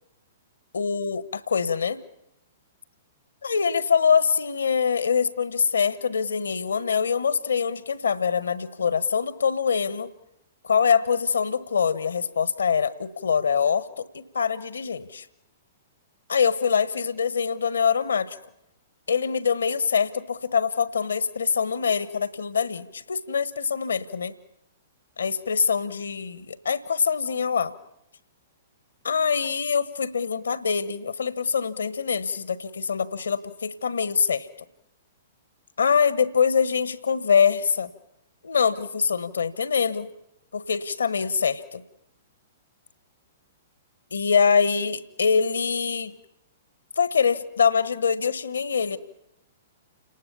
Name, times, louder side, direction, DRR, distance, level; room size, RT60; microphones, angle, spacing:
voice 1, 0.7-2.0 3.4-10.1 10.6-15.3 16.3-18.4 19.1-24.3 25.2-27.7 29.0-34.5 35.8-37.9 38.4-40.1 40.5-41.8 44.1-46.1 47.0-49.0, left 6 dB, 70° left, 16 dB, 1.3 m, -24 dB
29.5 x 19.5 x 7.1 m, 0.81 s
figure-of-eight pair, 110°, 0 cm